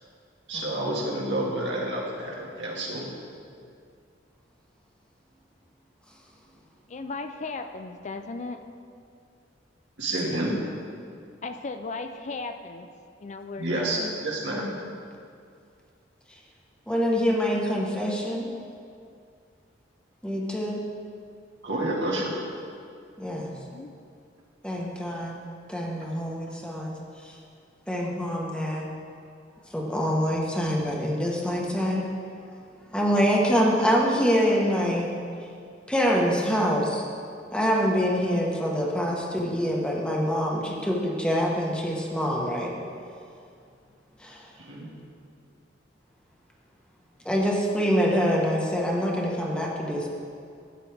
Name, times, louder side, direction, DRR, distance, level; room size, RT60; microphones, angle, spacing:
voice 1, 0.5-3.1 10.0-10.5 13.6-14.6 21.6-22.4 44.6-44.9, right 1 dB, 80° right, -3 dB, 2.0 m, -29 dB
voice 2, 6.9-8.6 11.4-12.9 13.2-14.3 23.7-23.9, left 3 dB, 40° left, 7 dB, 0.5 m, -36 dB
voice 3, 16.9-18.5 20.2-20.8 23.2-23.5 24.6-25.4 25.7-27.0 27.2-27.4 27.9-28.9 29.7-32.1 32.9-35.1 35.9-37.0 37.5-42.7 44.2-44.5 47.2-50.1, equal, 5° left, -2 dB, 1.3 m, -25 dB
12.5 x 8.8 x 3.5 m, 2.3 s
head